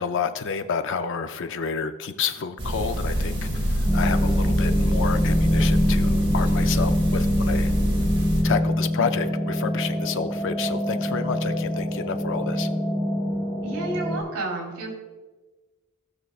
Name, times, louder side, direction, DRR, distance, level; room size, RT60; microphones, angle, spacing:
voice 1, 0.0-7.7 8.4-12.7, left 6 dB, 60° left, 9 dB, 0.5 m, -29 dB
sound 1, 2.6-8.4, equal, 25° right, 1.7 m, -24 dB
sound 2, 3.8-14.2, left 1 dB, 15° left, 2.1 m, -25 dB
voice 2, 13.6-14.9, right 2 dB, 60° right, 1 dB, 3.0 m, -31 dB
15.5 x 6.3 x 2.4 m, 1.3 s
head